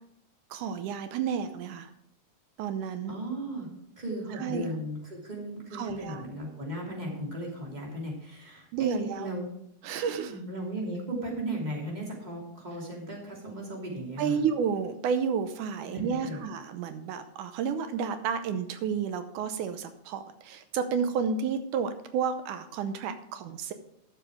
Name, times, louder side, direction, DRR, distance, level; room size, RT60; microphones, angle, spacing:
voice 1, 0.5-1.9 2.6-3.2 4.4-4.6 5.7-6.2 8.7-9.3 9.8-10.4 14.2-23.7, right 6 dB, 85° right, 9 dB, 2.2 m, -31 dB
voice 2, 3.1-3.7 4.0-9.5 10.1-14.4 15.8-16.4, right 1 dB, 15° right, -2 dB, 2.7 m, -36 dB
11.5 x 7.0 x 4.9 m, 0.75 s
omnidirectional pair, 3.6 m